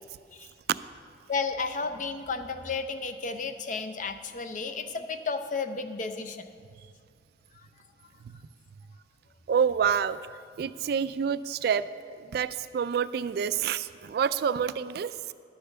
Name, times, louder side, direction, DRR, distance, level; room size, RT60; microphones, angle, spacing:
voice 1, 1.3-6.5 7.5-7.7, left 4 dB, 45° left, 8 dB, 0.6 m, -33 dB
voice 2, 9.5-10.2 10.6-11.8 12.2-15.3, right 7 dB, 60° right, 14 dB, 0.3 m, -28 dB
11.0 x 6.7 x 6.6 m, 2.2 s
head